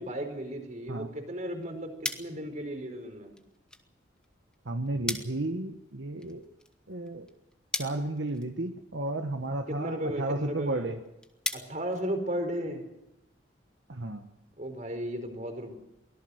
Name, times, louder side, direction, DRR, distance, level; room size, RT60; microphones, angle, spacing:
voice 1, 0.0-3.3 9.7-11.0 11.5-12.9 14.6-15.7, equal, 40° right, 5 dB, 4.7 m, -35 dB
sound 1, 1.4-12.8, left 1 dB, 5° left, 1.5 m, -42 dB
voice 2, 4.6-6.4 6.9-7.3 7.8-11.0 13.9-14.3, right 2 dB, 70° right, 5 dB, 1.4 m, -33 dB
24.0 x 18.0 x 6.5 m, 0.87 s
head